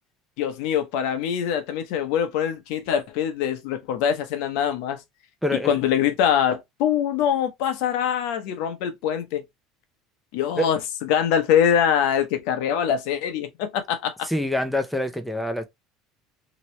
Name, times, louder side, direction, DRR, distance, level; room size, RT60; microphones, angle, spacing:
voice 1, 0.4-5.0 5.5-9.5 10.3-14.3, left 9 dB, 70° left, 0.9 m, -24 dB
voice 2, 5.4-5.7 10.6-10.7 14.3-15.6, left 1 dB, ahead, 0.7 m, -25 dB
2.9 x 2.9 x 3.1 m
supercardioid pair, 105°, 0 cm